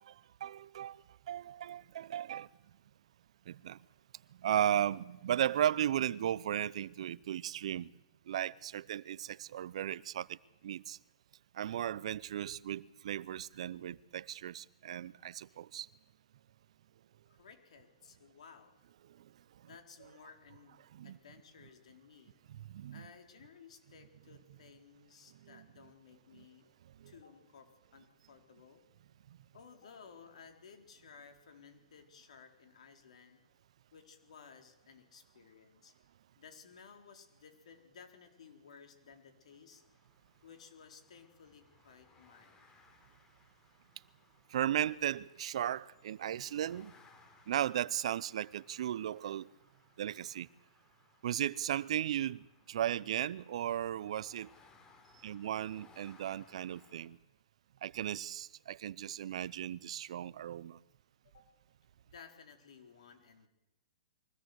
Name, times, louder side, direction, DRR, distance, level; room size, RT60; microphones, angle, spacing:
voice 1, 0.0-2.5 3.5-3.8 4.4-7.9 8.3-10.4 10.6-11.0 11.5-15.9 19.2-19.3 20.9-21.2 22.5-23.0 25.4-25.6 26.3-26.4 27.0-27.1 44.5-46.9 47.5-49.5 50.0-50.5 51.2-54.5 55.2-57.2 57.8-60.8, right 11 dB, 65° right, 0.7 m, -36 dB
voice 2, 17.3-18.7 19.6-22.3 22.9-26.7 27.1-28.8 29.5-33.4 33.9-35.9 36.4-39.8 40.4-42.6 61.2-61.4 62.1-63.5, left 6 dB, 70° left, 4.1 m, -57 dB
sound 1, 39.7-57.1, left 3 dB, 20° left, 3.6 m, -65 dB
23.0 x 16.5 x 8.0 m
hypercardioid pair, 135°, 4 cm